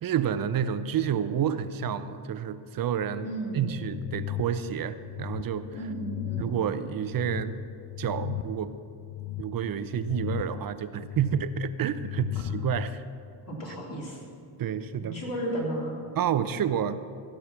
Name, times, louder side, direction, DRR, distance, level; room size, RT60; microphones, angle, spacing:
voice 1, 0.0-3.3 3.5-5.7 6.4-7.6 8.0-8.7 9.4-13.0 14.6-15.2 16.2-17.1, right 8 dB, 50° right, 13 dB, 0.7 m, -29 dB
voice 2, 3.2-3.9 5.7-6.5 13.5-14.2 15.0-16.0, right 1 dB, 45° left, -3 dB, 3.4 m, -34 dB
sound 1, 3.7-12.9, left 15 dB, 65° left, 0.6 m, -37 dB
15.5 x 6.4 x 5.8 m, 2.5 s
cardioid pair, 90°, 44 cm